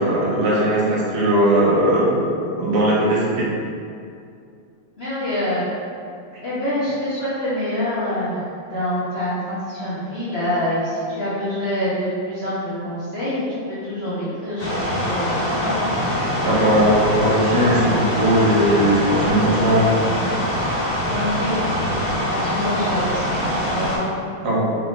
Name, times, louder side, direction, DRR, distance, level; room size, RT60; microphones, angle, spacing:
voice 1, 0.0-3.5 16.4-19.9 24.4-24.8, right 1 dB, 55° right, -5 dB, 1.0 m, -18 dB
voice 2, 5.0-5.6 6.4-13.4 13.8-15.7 21.1-21.6 22.3-23.4 23.7-24.1, left 1 dB, 70° left, -12 dB, 0.5 m, -26 dB
sound 1, 14.6-24.0, equal, 40° left, 1.3 m, -23 dB
4.6 x 2.4 x 3.6 m, 2.4 s
omnidirectional pair, 2.4 m